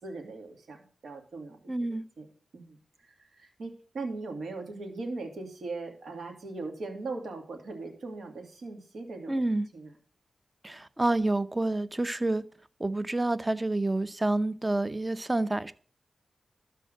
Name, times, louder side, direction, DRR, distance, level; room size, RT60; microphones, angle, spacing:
voice 1, 0.0-2.3 2.5-2.8 3.0-9.4 9.7-9.9, right 3 dB, 80° right, 2.5 m, -39 dB
voice 2, 1.7-2.0 9.3-9.7 10.6-12.4 12.8-15.7, right 2 dB, 20° right, 0.7 m, -28 dB
13.0 x 4.4 x 7.9 m
cardioid pair, 75°, 0 cm